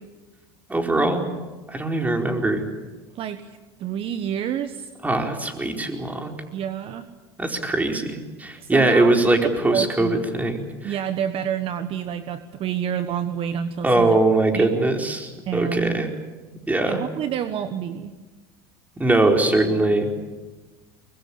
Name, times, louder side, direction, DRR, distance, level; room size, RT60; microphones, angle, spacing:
voice 1, 0.7-1.3 1.7-2.6 5.0-6.3 7.4-11.0 13.8-16.1 16.7-17.0 19.0-20.2, right 2 dB, 10° right, 3 dB, 4.6 m, -21 dB
voice 2, 3.8-4.9 6.5-7.1 8.6-9.4 9.7-10.3 10.8-14.1 14.5-14.7 15.5-16.1 16.9-18.1, right 8 dB, 45° right, 10 dB, 1.4 m, -28 dB
23.5 x 22.5 x 8.7 m, 1.2 s
supercardioid pair, 100°, 13 cm